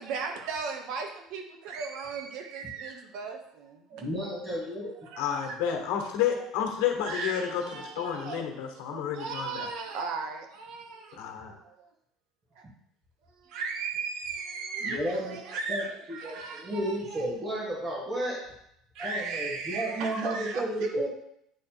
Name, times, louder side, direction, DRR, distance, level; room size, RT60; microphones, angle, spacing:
voice 1, 0.0-4.2 4.8-5.8 6.3-6.5 7.0-8.5 8.9-11.9 12.6-12.7 13.4-17.3 18.9-21.1, right 4 dB, 55° right, 4 dB, 1.0 m, -37 dB
voice 2, 4.0-4.9 14.8-15.4 15.7-15.8 16.2-18.4 19.0-21.1, right 1 dB, 20° right, -8 dB, 1.4 m, -32 dB
voice 3, 5.2-7.6 7.9-9.7 11.1-11.5, left 9 dB, 90° left, 3 dB, 1.3 m, -30 dB
8.7 x 3.1 x 4.5 m, 0.75 s
cardioid pair, 175°, 0 cm